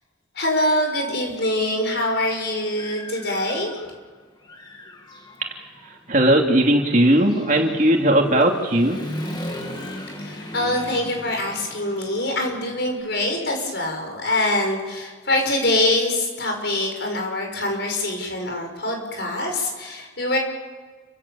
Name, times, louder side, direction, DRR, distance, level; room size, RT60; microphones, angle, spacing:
voice 1, 0.4-3.7 10.2-20.4, left 1 dB, 60° left, 2 dB, 6.0 m, -24 dB
Human voice / Motorcycle, 1.7-1.8 2.3-4.1 4.4-13.0, equal, 20° left, 2.4 m, -38 dB
voice 2, 5.5-9.0, right 1 dB, 40° right, 1 dB, 3.0 m, -18 dB
30.0 x 16.5 x 7.2 m, 1.4 s
head